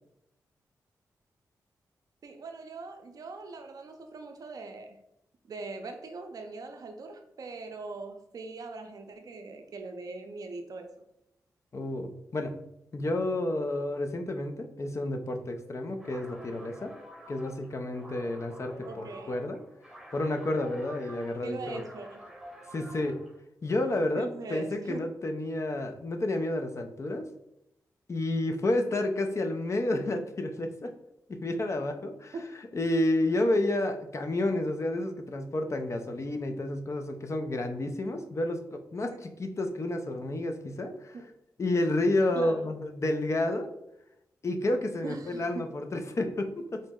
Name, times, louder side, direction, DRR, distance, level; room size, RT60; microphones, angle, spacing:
voice 1, 2.2-5.0 5.5-10.9 18.8-19.3 21.4-22.2 24.1-25.0 32.3-32.5 39.1-39.2 41.1-41.2 42.3-42.7 45.0-45.7, right 3 dB, 60° right, 5 dB, 0.5 m, -41 dB
voice 2, 11.7-12.6 12.9-16.9 17.3-19.6 20.1-21.8 22.7-23.2 23.6-27.2 28.1-30.9 31.3-32.3 32.7-41.2 41.6-43.7 44.4-46.8, left 1 dB, 45° left, 5 dB, 0.5 m, -30 dB
sound 1, 15.9-23.4, equal, ahead, 0.9 m, -49 dB
3.9 x 2.1 x 3.6 m, 0.82 s
supercardioid pair, 45°, 7 cm